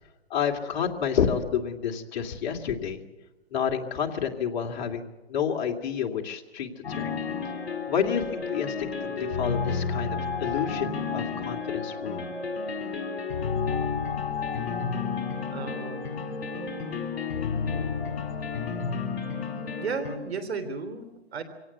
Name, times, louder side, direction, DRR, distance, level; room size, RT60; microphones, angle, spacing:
voice 1, 0.3-3.0 3.5-7.2 7.9-12.3, left 7 dB, 45° left, 2 dB, 2.4 m, -29 dB
sound 1, 6.8-20.2, left 5 dB, 60° left, 4.5 m, -31 dB
voice 2, 15.5-16.6 19.8-21.4, right 5 dB, 75° right, 12 dB, 3.5 m, -35 dB
24.5 x 17.5 x 8.3 m, 1.1 s
hypercardioid pair, 155°, 32 cm